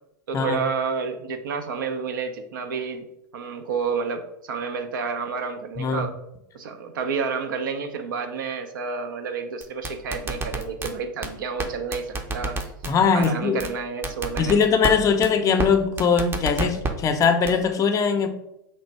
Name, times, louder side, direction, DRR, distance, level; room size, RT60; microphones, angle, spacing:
voice 1, 0.3-3.1 3.3-6.1 6.5-12.6 13.1-14.7, right 5 dB, 85° right, 7 dB, 0.5 m, -30 dB
voice 2, 5.8-6.1 12.8-13.6 14.4-18.3, left 6 dB, 30° left, 7 dB, 0.5 m, -21 dB
sound 1, 9.6-10.9 11.2-11.3 11.6-11.7 11.9-12.9 13.2-13.3 13.6-13.7 14.0-14.9 15.2-15.3 15.6-15.7 16.0-16.9 17.2-17.5, right 3 dB, 20° right, 0.5 m, -27 dB
3.1 x 2.5 x 4.4 m, 0.82 s
hypercardioid pair, 105°, 11 cm